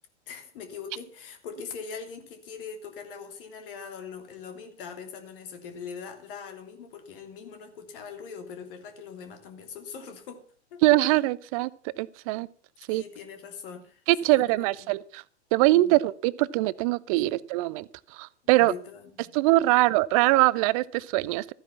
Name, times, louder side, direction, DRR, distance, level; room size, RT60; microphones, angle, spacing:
voice 1, 0.3-10.4 10.7-10.8 12.9-14.6 15.7-15.9 17.1-17.3 18.6-19.3, left 6 dB, 50° left, 6 dB, 3.2 m, -42 dB
voice 2, 10.8-12.5 12.9-13.0 14.1-15.2 15.5-18.7 19.3-21.5, right 18 dB, 30° right, 20 dB, 0.5 m, -23 dB
14.5 x 9.8 x 5.9 m, 0.42 s
figure-of-eight pair, 95°, 35 cm